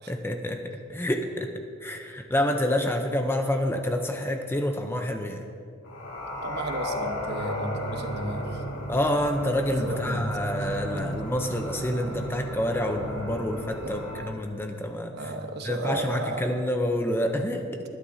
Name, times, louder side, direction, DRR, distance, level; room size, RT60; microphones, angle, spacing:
voice 1, 0.1-1.5 1.8-5.5 8.9-15.3 15.6-17.8, left 1 dB, 10° left, 4 dB, 0.6 m, -28 dB
sound 1, 5.8-14.2, equal, 90° left, 3.7 m, -34 dB
voice 2, 6.4-8.6 9.8-10.3 10.6-11.0 12.0-12.1 13.8-13.9 15.1-16.4, right 1 dB, 50° right, 4 dB, 1.0 m, -34 dB
20.5 x 11.5 x 2.7 m, 2.4 s
head